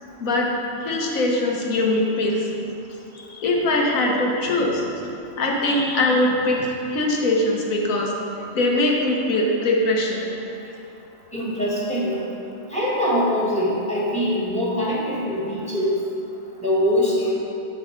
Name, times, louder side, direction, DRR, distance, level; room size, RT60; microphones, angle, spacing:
voice 1, 0.2-0.5 0.8-2.5 3.1-5.1 5.4-8.1 8.5-10.2, left 1 dB, 90° left, -1 dB, 1.5 m, -22 dB
voice 2, 11.3-12.2 12.7-16.0 16.6-17.3, equal, 5° left, -7 dB, 1.7 m, -23 dB
7.3 x 5.0 x 5.8 m, 2.8 s
omnidirectional pair, 1.4 m